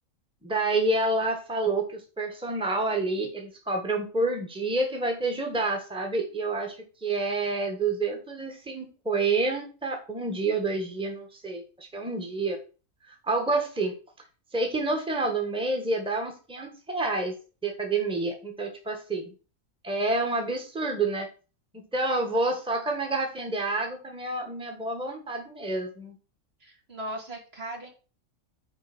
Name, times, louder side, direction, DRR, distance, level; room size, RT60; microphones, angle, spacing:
voice 1, 0.4-12.6 13.2-13.9 14.5-17.3 17.6-19.3 19.8-21.3 21.7-26.1, right 2 dB, 5° right, 3 dB, 1.6 m, -28 dB
voice 2, 26.6-27.9, right 1 dB, 45° right, 1 dB, 2.3 m, -38 dB
6.5 x 5.0 x 6.1 m, 0.34 s
omnidirectional pair, 1.4 m